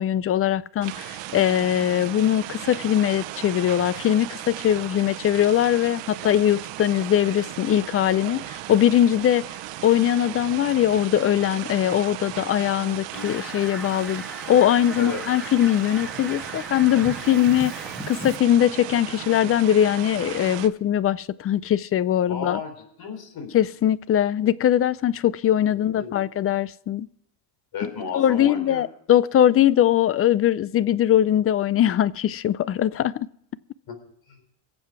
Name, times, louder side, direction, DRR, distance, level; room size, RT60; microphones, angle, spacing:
voice 1, 0.0-9.4 9.8-14.2 14.5-17.7 18.1-22.6 23.5-27.1 28.1-33.3, left 11 dB, 30° left, 0.4 m, -21 dB
Water mill - mill wheel from the outside, 0.8-20.7, right 14 dB, 65° right, 0.9 m, -36 dB
Fowl, 13.1-18.4, right 1 dB, ahead, 2.0 m, -38 dB
voice 2, 22.3-23.5 26.0-26.2 27.7-28.9 33.9-34.0 34.3-34.4, left 5 dB, 50° left, 3.8 m, -33 dB
23.0 x 7.7 x 4.7 m
supercardioid pair, 100°, 48 cm